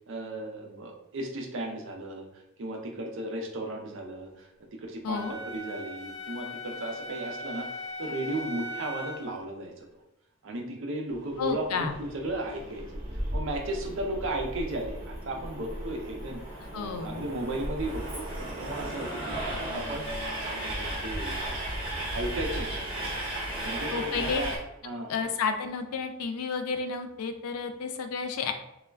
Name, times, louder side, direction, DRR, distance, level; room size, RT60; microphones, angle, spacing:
voice 1, 0.1-2.3 2.6-10.0 10.4-13.0 13.3-16.4 16.7-19.4 19.7-20.1 20.4-21.4 22.1-23.1 23.6-24.5 24.8-25.1, right 1 dB, 55° right, 2 dB, 0.5 m, -35 dB
voice 2, 5.0-5.3 11.4-12.0 16.7-17.2 23.9-24.4 25.1-28.5, left 5 dB, 80° left, 7 dB, 0.4 m, -31 dB
Wind instrument woodwind instrument, 5.1-9.3, left 1 dB, 15° left, 0.7 m, -39 dB
Train, 11.1-24.6, right 1 dB, 25° right, 0.7 m, -35 dB
2.3 x 2.1 x 3.3 m, 0.89 s
head